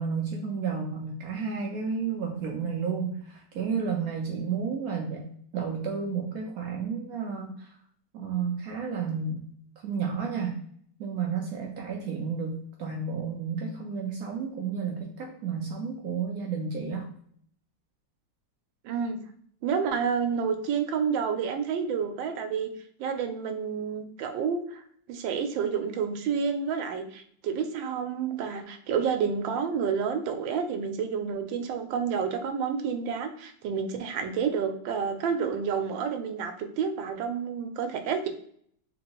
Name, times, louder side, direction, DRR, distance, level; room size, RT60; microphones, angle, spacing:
voice 1, 0.0-7.7 8.1-9.5 9.8-10.6 11.0-17.1, right 5 dB, 75° right, 1 dB, 0.8 m, -32 dB
voice 2, 18.8-19.2 19.6-22.7 23.0-24.8 25.1-38.3, right 6 dB, 90° right, 7 dB, 1.3 m, -29 dB
3.6 x 3.0 x 2.9 m, 0.62 s
omnidirectional pair, 2.0 m